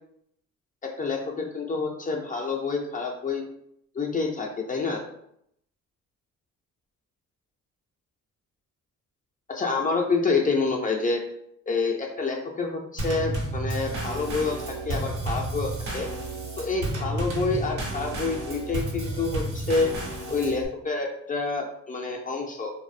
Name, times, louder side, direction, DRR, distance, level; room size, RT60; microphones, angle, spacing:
voice 1, 0.8-3.4 3.9-5.0 9.5-11.2 11.7-16.1 16.6-19.9 20.3-22.7, left 4 dB, 30° left, 1 dB, 0.4 m, -28 dB
Drum kit / Snare drum / Bass drum, 13.0-20.7, right 2 dB, 70° right, 0.8 m, -31 dB
2.4 x 2.0 x 2.4 m, 0.74 s
cardioid pair, 90°, 30 cm